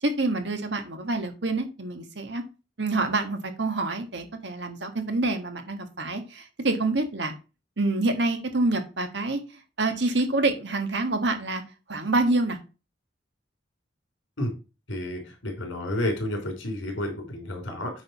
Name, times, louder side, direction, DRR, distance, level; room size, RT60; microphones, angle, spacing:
voice 1, 0.0-2.4 2.8-7.3 7.8-9.4 9.8-11.6 11.9-12.6, right 2 dB, 65° right, 6 dB, 1.6 m, -27 dB
voice 2, 14.9-17.9, left 1 dB, 80° left, 3 dB, 3.4 m, -30 dB
8.9 x 3.7 x 5.9 m, 0.30 s
head